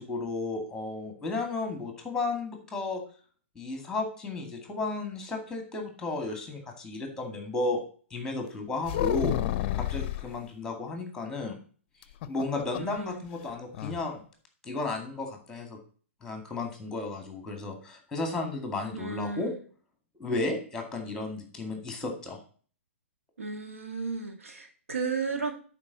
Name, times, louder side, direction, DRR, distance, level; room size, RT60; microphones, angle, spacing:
voice 1, 0.0-3.0 3.6-7.8 8.1-9.4 9.8-11.6 12.3-14.2 14.6-15.8 16.2-19.5 20.2-22.4, left 3 dB, 10° left, 4 dB, 2.2 m, -33 dB
sound 1, 8.8-10.3 12.0-13.0 13.3-13.4 13.7-14.0, left 12 dB, 45° left, 0.6 m, -30 dB
voice 2, 12.8-13.2 18.9-19.6 23.4-25.5, right 4 dB, 90° right, 4 dB, 1.8 m, -34 dB
11.0 x 4.8 x 4.1 m, 0.43 s
hypercardioid pair, 130°, 7 cm